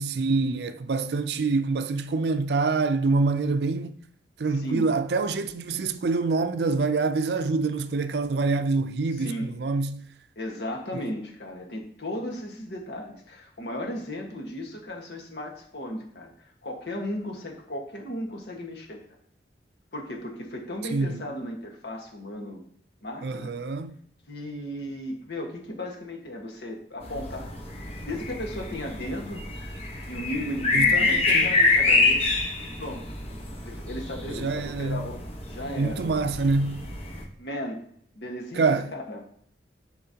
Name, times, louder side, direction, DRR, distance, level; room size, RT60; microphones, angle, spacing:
voice 1, 0.0-3.9 4.4-10.0 10.9-11.0 20.9-21.2 23.2-23.9 30.7-31.5 34.4-35.1 35.8-36.9 38.5-38.9, right 3 dB, 65° right, 0.4 m, -26 dB
voice 2, 4.5-4.9 9.2-9.5 10.3-19.0 19.9-22.6 23.0-23.5 24.3-27.5 28.0-29.5 30.1-32.2 32.8-33.1 33.6-35.2 35.5-36.3 37.4-37.8 38.1-38.6 38.9-39.2, left 1 dB, 70° left, 1.5 m, -35 dB
sound 1, 27.0-37.2, left 3 dB, 35° left, 1.1 m, -26 dB
11.0 x 4.5 x 2.9 m
head